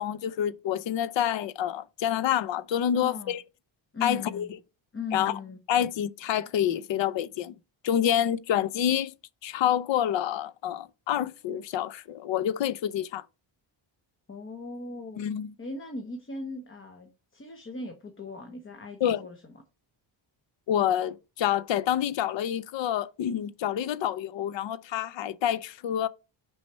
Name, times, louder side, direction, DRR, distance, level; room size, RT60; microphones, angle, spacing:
voice 1, 0.0-3.4 4.0-4.5 5.1-5.4 5.7-7.6 7.8-9.1 9.4-13.2 15.2-15.5 19.0-19.2 20.7-26.1, left 10 dB, 65° left, 0.6 m, -27 dB
voice 2, 3.0-3.3 3.9-4.5 4.9-5.6 14.3-15.2 15.6-19.4, left 3 dB, 25° left, 0.9 m, -38 dB
6.3 x 4.8 x 4.2 m
wide cardioid pair, 155°, 48 cm